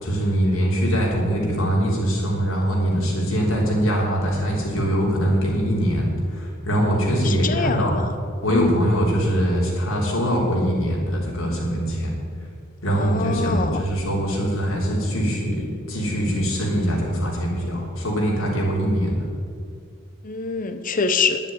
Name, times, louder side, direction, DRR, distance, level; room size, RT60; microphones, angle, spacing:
voice 1, 0.0-8.0 8.4-12.1 12.8-19.3, equal, 70° left, -3 dB, 3.4 m, -22 dB
voice 2, 7.2-8.1 8.5-8.8 12.9-13.8 20.2-21.4, left 4 dB, 40° left, 10 dB, 0.7 m, -24 dB
11.0 x 7.2 x 8.9 m, 2.2 s
head